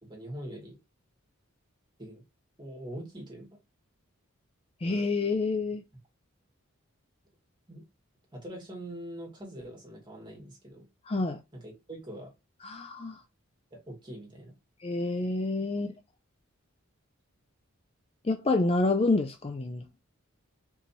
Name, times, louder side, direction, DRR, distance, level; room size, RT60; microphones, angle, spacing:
voice 1, 0.0-0.8 2.0-2.2 2.6-3.6 7.7-7.8 8.3-10.8 11.5-12.3 13.7-14.5, right 1 dB, 20° right, 2.2 m, -43 dB
voice 2, 4.8-5.8 11.1-11.4 12.6-13.2 14.8-15.9 18.2-19.8, left 3 dB, 25° left, 0.4 m, -28 dB
4.6 x 4.0 x 2.7 m
head